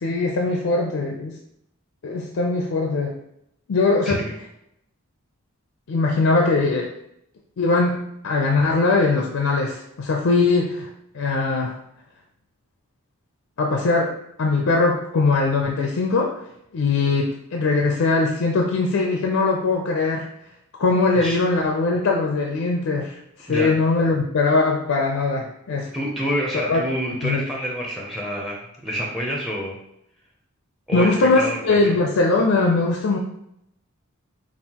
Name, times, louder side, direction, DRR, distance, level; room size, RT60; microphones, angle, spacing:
voice 1, 0.0-1.3 2.0-3.2 3.7-4.2 5.9-6.9 7.6-10.9 11.1-11.8 13.6-16.4 16.7-20.3 20.8-25.9 26.7-26.8 27.2-27.4 30.9-33.2, left 3 dB, 70° left, 1 dB, 0.4 m, -21 dB
voice 2, 25.9-29.8 30.9-31.8, equal, ahead, -2 dB, 0.5 m, -27 dB
5.4 x 2.4 x 2.9 m, 0.78 s
head